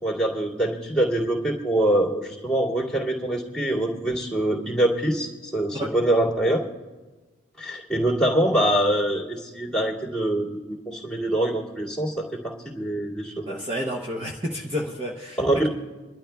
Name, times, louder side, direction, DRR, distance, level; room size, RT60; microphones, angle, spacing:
voice 1, 0.0-6.6 7.6-13.5 15.4-15.7, right 1 dB, 5° left, -5 dB, 2.4 m, -24 dB
voice 2, 13.5-15.4, equal, 25° right, -1 dB, 0.8 m, -30 dB
28.0 x 12.0 x 2.3 m, 1.2 s
head